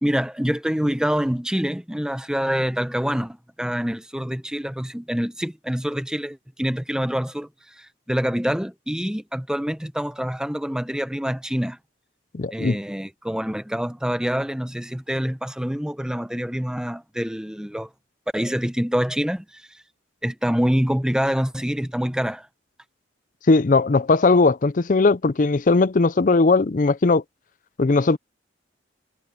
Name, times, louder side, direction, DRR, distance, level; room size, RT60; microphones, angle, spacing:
voice 1, 0.0-11.8 12.5-17.9 18.3-19.7 20.2-22.5, equal, 5° right, 0.8 m, -26 dB
voice 2, 12.3-12.8 23.5-27.2 27.8-28.2, left 3 dB, 40° left, 0.5 m, -18 dB
head